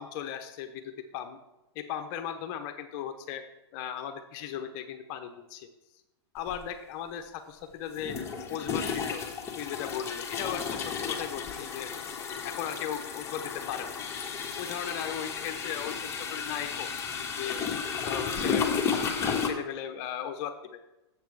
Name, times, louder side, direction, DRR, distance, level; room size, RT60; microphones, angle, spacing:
voice 1, 0.0-1.4 1.7-3.4 3.7-5.7 6.3-8.2 8.5-14.0 14.6-17.6 18.0-20.8, left 9 dB, 45° left, 7 dB, 0.8 m, -37 dB
sound 1, 6.5-6.6 8.0-19.5, left 6 dB, 20° left, 1.2 m, -33 dB
7.4 x 6.6 x 4.7 m, 0.98 s
hypercardioid pair, 125°, 14 cm